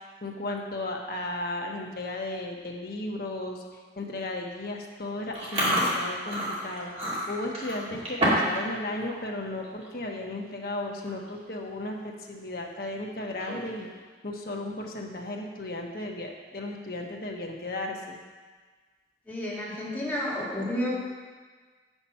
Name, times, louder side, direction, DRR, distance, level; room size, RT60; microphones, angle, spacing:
voice 1, 0.2-3.6 4.0-13.9 14.2-18.2, left 2 dB, 55° left, 1 dB, 1.1 m, -35 dB
Chewing mastication, 5.3-8.6 8.9-9.2 9.6-9.9 10.6-10.7 10.9-11.3 11.7-11.8 13.2-13.8, equal, 35° right, 2.5 m, -28 dB
voice 2, 19.3-20.9, left 1 dB, 10° left, -8 dB, 2.2 m, -31 dB
8.1 x 5.9 x 5.6 m, 1.4 s
head